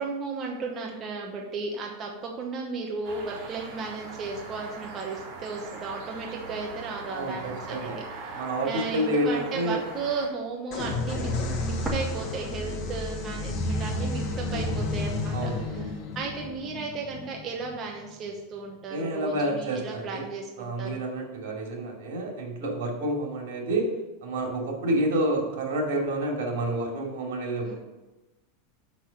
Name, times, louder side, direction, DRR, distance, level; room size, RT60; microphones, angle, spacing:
voice 1, 0.0-21.0 27.6-27.8, right 4 dB, 25° right, 0 dB, 1.0 m, -35 dB
sound 1, 3.0-10.3, right 3 dB, 45° right, 2.2 m, -41 dB
voice 2, 7.1-8.0 8.3-9.8 15.3-15.8 18.9-20.3 20.6-23.9 24.2-27.8, right 1 dB, 80° right, 1 dB, 2.7 m, -29 dB
sound 2, 10.7-18.3, left 2 dB, 40° left, 1.4 m, -31 dB
sound 3, 11.9-13.8 14.1-14.2 14.9-15.9, right 1 dB, 10° right, 1.1 m, -39 dB
6.3 x 6.1 x 6.4 m, 1.1 s
supercardioid pair, 160°, 0 cm